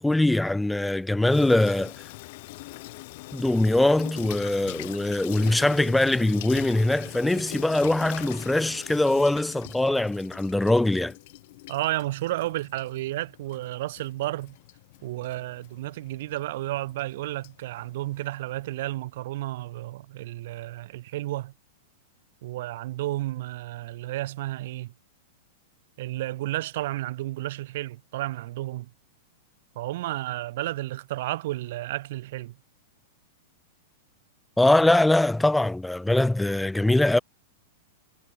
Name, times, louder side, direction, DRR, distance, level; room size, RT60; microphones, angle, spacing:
voice 1, 0.0-1.9 3.3-11.1 34.6-37.2, left 1 dB, 5° left, 0.4 m, -22 dB
Water tap faucet / Sink (filling or washing), 1.3-18.8, left 22 dB, 45° left, 4.4 m, -43 dB
voice 2, 11.7-14.6 15.0-21.5 22.4-24.9 26.0-28.9 29.7-32.6, right 16 dB, 50° right, 3.3 m, -32 dB
supercardioid pair, 170°, 0 cm